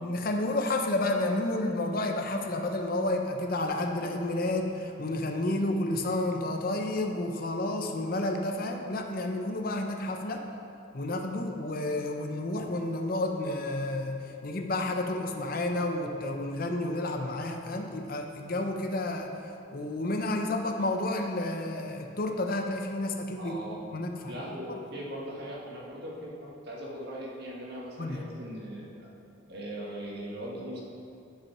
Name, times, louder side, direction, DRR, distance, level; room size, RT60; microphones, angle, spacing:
voice 1, 0.0-10.4 10.9-19.3 19.7-23.5 23.9-24.3 24.7-24.8 28.0-28.3, left 2 dB, 45° left, 4 dB, 0.7 m, -30 dB
voice 2, 23.4-23.8 24.3-29.1 29.5-30.8, equal, 55° right, -3 dB, 1.7 m, -40 dB
10.0 x 5.4 x 5.8 m, 2.7 s
head